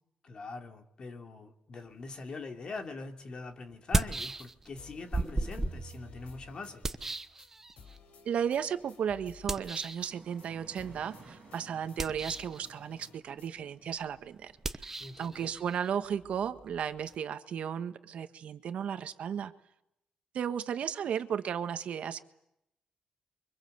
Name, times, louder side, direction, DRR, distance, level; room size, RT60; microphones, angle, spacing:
voice 1, 0.2-6.8 15.0-15.5, left 3 dB, 40° left, 5 dB, 2.9 m, -43 dB
sound 1, 2.8-2.9 3.7-4.8 5.1-8.0 9.5-10.1 11.9-12.6 14.6-17.2, right 2 dB, 15° right, 1.0 m, -36 dB
sound 2, 4.2-4.5 4.8-7.1 7.4-7.5 7.8-10.1 10.4-10.5 10.8-13.5, left 5 dB, 75° left, 4.5 m, -55 dB
voice 2, 8.2-14.9 15.2-19.5 20.3-22.2, right 8 dB, 65° right, 9 dB, 1.6 m, -34 dB
sound 3, 10.1-15.2, right 4 dB, 35° right, 6.3 m, -57 dB
29.0 x 24.5 x 8.1 m, 0.79 s
wide cardioid pair, 170°, 2 cm